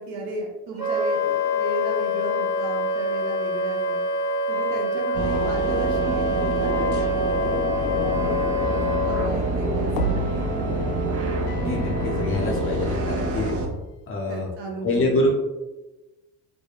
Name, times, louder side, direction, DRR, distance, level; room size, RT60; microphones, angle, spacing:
voice 1, 0.0-4.0 4.5-7.6 8.1-8.4 9.0-10.5 14.3-15.3, right 3 dB, 60° right, 0 dB, 0.8 m, -34 dB
Wind instrument woodwind instrument, 0.8-9.3, left 2 dB, 10° right, 1.4 m, -25 dB
sound 1, 5.1-13.7, right 2 dB, 30° right, 0.5 m, -27 dB
sound 2, 8.6-13.0 13.4-13.5, left 1 dB, 80° left, 0.5 m, -31 dB
voice 2, 11.6-13.6 14.1-14.5 14.8-15.3, left 1 dB, 30° left, 0 dB, 0.5 m, -25 dB
2.7 x 2.1 x 2.3 m, 1.0 s
hypercardioid pair, 55°, 47 cm